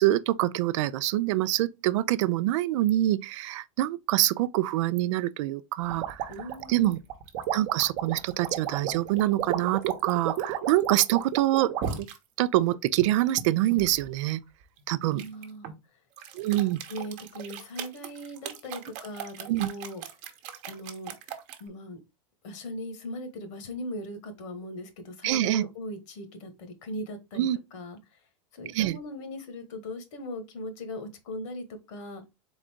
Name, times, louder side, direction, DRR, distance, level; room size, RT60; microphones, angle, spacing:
voice 1, 0.0-6.3 6.7-7.0 7.5-11.7 12.0-12.1 12.4-14.4 14.9-15.2 16.3-16.8 19.5-19.7 25.2-25.6 27.4-27.6 28.7-29.0, right 15 dB, 65° right, 0.4 m, -25 dB
sound 1, 5.9-12.2 12.7-14.0 15.2-15.7 16.2-21.6, right 9 dB, 50° right, 0.9 m, -34 dB
voice 2, 6.3-6.9 15.1-15.7 16.5-16.6 16.9-20.0 20.6-21.1 21.6-22.0 22.4-28.0 28.5-32.3, left 1 dB, 65° left, 1.4 m, -39 dB
4.0 x 3.7 x 3.5 m
supercardioid pair, 130°, 17 cm